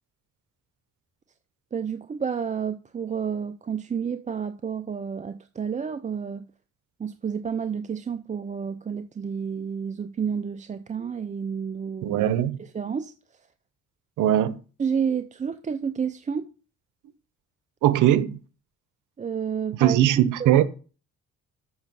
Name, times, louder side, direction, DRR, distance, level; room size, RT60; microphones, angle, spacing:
voice 1, 1.7-6.5 7.0-12.2 12.7-13.1 14.8-16.5 19.2-20.6, right 7 dB, 25° right, 0.5 m, -30 dB
voice 2, 12.0-12.6 14.2-14.6 17.8-18.4 19.7-20.6, right 12 dB, 85° right, 0.8 m, -20 dB
7.2 x 6.2 x 5.4 m
cardioid pair, 90°, 30 cm